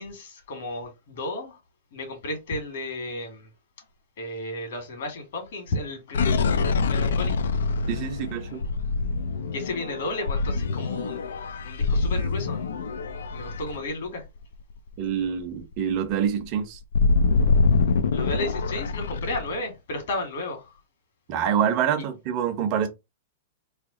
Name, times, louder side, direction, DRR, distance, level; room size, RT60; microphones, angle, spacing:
voice 1, 0.0-1.6 1.9-3.5 4.2-7.4 9.5-11.4 11.6-12.6 13.3-14.2 18.1-20.7, left 2 dB, 70° left, 1.7 m, -33 dB
sound 1, 6.1-14.5 14.9-15.1 15.4-19.6, left 4 dB, 85° left, 0.5 m, -25 dB
voice 2, 7.9-8.6 15.0-16.8 21.3-22.9, right 8 dB, 40° right, 0.9 m, -26 dB
3.3 x 2.3 x 3.7 m
hypercardioid pair, 140°, 0 cm